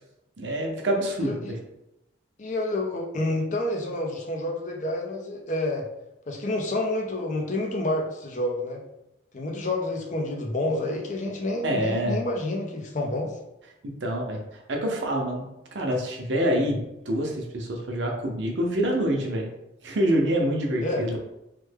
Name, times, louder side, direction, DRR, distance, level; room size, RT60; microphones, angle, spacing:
voice 1, 0.4-1.6 11.6-12.2 13.8-15.4 15.7-19.5 19.8-21.2, right 1 dB, 80° right, 1 dB, 0.7 m, -26 dB
voice 2, 1.2-1.5 2.4-5.9 6.3-8.8 9.3-13.4 20.8-21.0, left 1 dB, 40° left, 0 dB, 0.5 m, -29 dB
3.2 x 2.1 x 3.3 m, 0.89 s
head